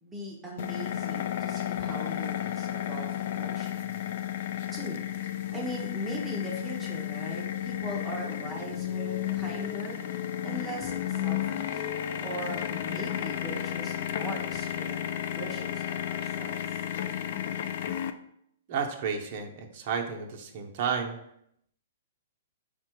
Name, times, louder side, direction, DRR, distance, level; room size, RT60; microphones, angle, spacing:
voice 1, 0.0-4.1 4.7-5.0 5.5-11.9 12.2-16.6, right 1 dB, 10° right, -3 dB, 0.8 m, -40 dB
sound 1, 0.6-18.1, left 11 dB, 55° left, 0.3 m, -33 dB
voice 2, 18.7-21.2, right 6 dB, 45° right, 1 dB, 0.7 m, -32 dB
5.3 x 2.2 x 4.5 m, 0.74 s
hypercardioid pair, 145°, 0 cm